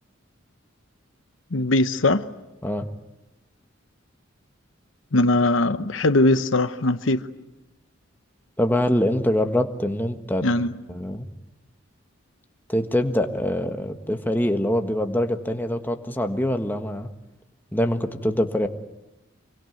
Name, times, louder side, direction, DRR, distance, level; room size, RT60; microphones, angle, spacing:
voice 1, 1.5-2.3 5.1-7.2 10.4-10.7, left 2 dB, 70° left, 1.0 m, -20 dB
voice 2, 8.6-10.5 10.9-11.3 12.7-17.1 17.7-18.7, left 1 dB, 10° left, 1.5 m, -24 dB
26.0 x 23.5 x 9.3 m
head